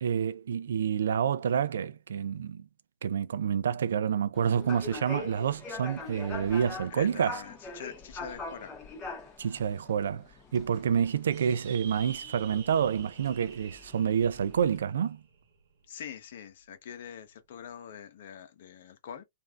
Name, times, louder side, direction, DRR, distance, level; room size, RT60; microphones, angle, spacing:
voice 1, 0.0-2.6 3.0-7.4 9.4-10.3 10.5-15.2, right 8 dB, 80° right, 0.3 m, -28 dB
sound 1, 4.3-14.8, left 3 dB, 20° left, 1.2 m, -44 dB
voice 2, 6.9-8.7 15.9-19.2, left 8 dB, 60° left, 0.9 m, -44 dB
sound 2, 11.3-16.0, right 7 dB, 60° right, 1.0 m, -49 dB
3.2 x 2.6 x 2.4 m
hypercardioid pair, 145°, 0 cm